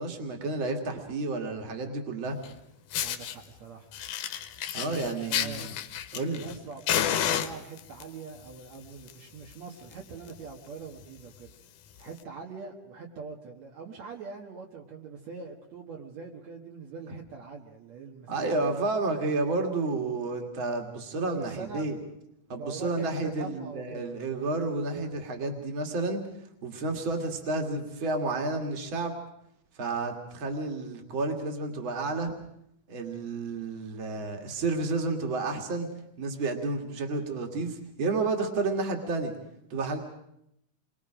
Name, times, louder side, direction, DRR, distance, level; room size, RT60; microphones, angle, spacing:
voice 1, 0.0-2.4 4.7-5.7 6.1-6.5 18.3-22.0 22.5-26.2 26.6-29.1 29.8-32.3 32.9-35.9 36.2-39.3 39.7-40.0, right 3 dB, 45° right, 4 dB, 2.7 m, -31 dB
Fire, 2.4-2.5 2.9-3.4 3.9-6.6 6.9-8.0 8.8-9.1 9.4-9.5 9.9-10.0 10.3-10.5 11.0-11.1 12.1-12.2, left 10 dB, 80° left, 2.5 m, -30 dB
voice 2, 3.0-3.9 4.7-5.7 6.4-11.5 12.0-18.8 21.4-22.0 22.5-24.0, right 5 dB, 65° right, -1 dB, 2.7 m, -43 dB
29.0 x 22.5 x 5.0 m, 0.77 s
omnidirectional pair, 3.5 m